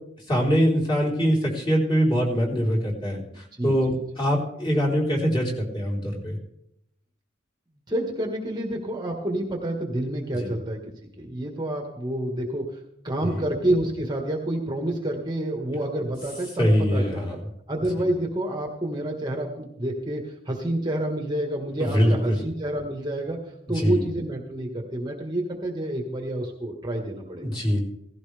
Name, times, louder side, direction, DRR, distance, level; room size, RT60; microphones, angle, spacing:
voice 1, 0.3-6.4 10.3-10.5 13.2-13.5 16.6-17.4 21.8-22.4 23.7-24.0 27.4-27.9, equal, 25° left, -3 dB, 4.2 m, -23 dB
voice 2, 3.3-4.0 7.9-10.8 11.2-17.2 17.7-27.5, right 1 dB, 20° right, 2 dB, 1.7 m, -29 dB
17.5 x 15.5 x 3.4 m, 0.77 s
head